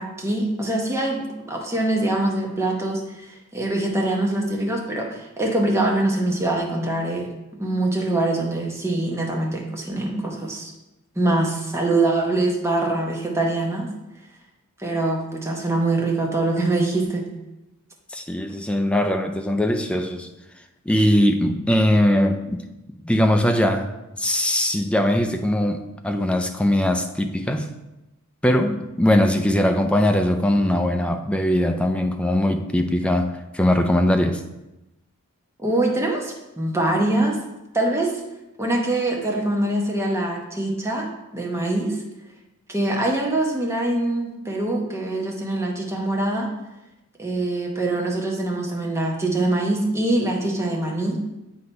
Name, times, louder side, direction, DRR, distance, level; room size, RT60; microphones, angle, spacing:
voice 1, 0.0-10.7 11.2-13.9 14.8-17.3 35.6-37.4 37.7-38.1 38.6-42.0 42.7-46.5 47.2-51.2, right 2 dB, 10° right, -1 dB, 0.9 m, -24 dB
voice 2, 18.1-20.3 20.9-22.7 23.0-23.9 24.2-27.7 28.4-34.4, left 1 dB, 5° left, 5 dB, 0.4 m, -21 dB
7.7 x 2.9 x 5.3 m, 0.97 s
head